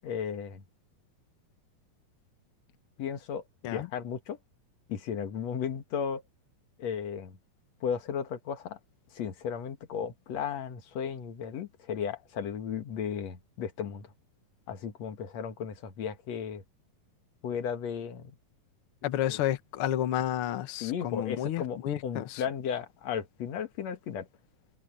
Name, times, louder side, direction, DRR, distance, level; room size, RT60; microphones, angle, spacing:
voice 1, 0.0-0.6 3.0-4.4 4.9-6.2 6.8-7.4 7.8-8.8 9.1-14.1 14.7-16.6 17.4-18.4 19.3-19.4 20.8-24.3, left 7 dB, 55° left, 2.4 m, -35 dB
voice 2, 19.0-22.4, left 12 dB, 85° left, 1.2 m, -31 dB
omnidirectional pair, 4.1 m